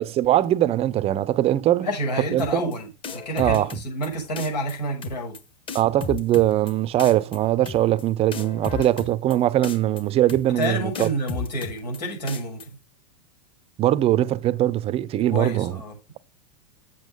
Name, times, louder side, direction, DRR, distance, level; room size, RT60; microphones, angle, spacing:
voice 1, 0.0-1.9 2.3-2.7 3.4-3.8 5.7-11.1 13.8-15.8, right 13 dB, 30° right, 0.6 m, -21 dB
voice 2, 1.8-5.3 10.6-12.7 15.3-16.2, equal, 85° left, 6.7 m, -29 dB
sound 1, 2.4-2.7 3.0-4.1 4.4-4.7 5.0-5.4 5.7-6.7 7.0-7.4 7.6-8.0 8.3-9.3 9.6-10.0 10.3-10.7 10.9-12.0 12.3-12.6, left 5 dB, 25° left, 1.5 m, -34 dB
8.2 x 7.4 x 5.2 m
hypercardioid pair, 115°, 21 cm